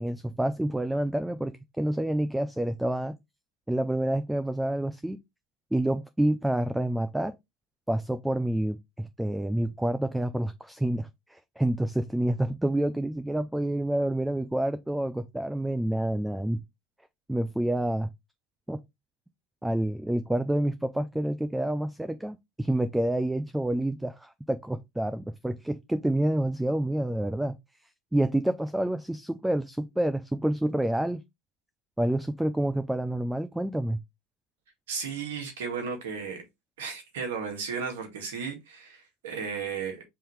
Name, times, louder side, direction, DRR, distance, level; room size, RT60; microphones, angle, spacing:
voice 1, 0.0-3.2 3.7-5.2 5.7-7.3 7.9-16.6 17.3-18.1 18.7-18.8 19.6-27.6 28.1-31.2 32.0-34.0, right 1 dB, 5° right, 0.4 m, -28 dB
voice 2, 34.9-36.4 36.8-40.0, right 6 dB, 85° right, 1.9 m, -34 dB
5.4 x 2.8 x 3.3 m
supercardioid pair, 105°, 0 cm